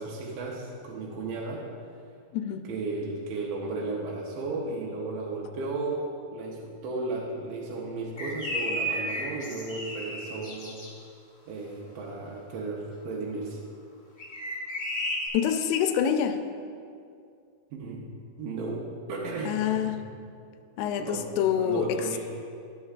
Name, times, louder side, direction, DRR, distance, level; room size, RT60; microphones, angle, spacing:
voice 1, 0.0-1.6 2.7-6.0 6.3-10.8 11.5-13.6 17.7-18.0 18.4-19.8 21.0-21.3 21.6-22.2, right 3 dB, 80° right, -3 dB, 2.5 m, -34 dB
sound 1, 8.2-10.9 14.2-15.3, equal, 70° left, 0.7 m, -33 dB
voice 2, 15.3-16.4 19.5-20.0 20.8-22.1, left 8 dB, 85° left, 7 dB, 2.4 m, -26 dB
13.0 x 8.3 x 2.4 m, 2.4 s
omnidirectional pair, 4.2 m